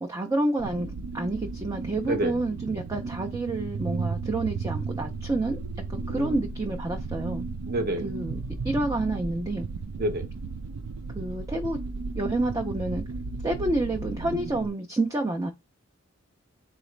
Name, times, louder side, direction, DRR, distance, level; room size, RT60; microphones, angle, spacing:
voice 1, 0.0-5.6 5.9-7.5 8.0-8.4 8.6-9.7 11.1-11.8 12.1-13.0 13.4-15.5, right 2 dB, 15° right, 0.4 m, -29 dB
sound 1, 0.6-14.7, right 4 dB, 80° right, 0.5 m, -34 dB
voice 2, 6.0-6.4 7.7-8.1 10.0-10.3, right 1 dB, 45° right, 0.9 m, -28 dB
4.0 x 2.4 x 3.2 m
head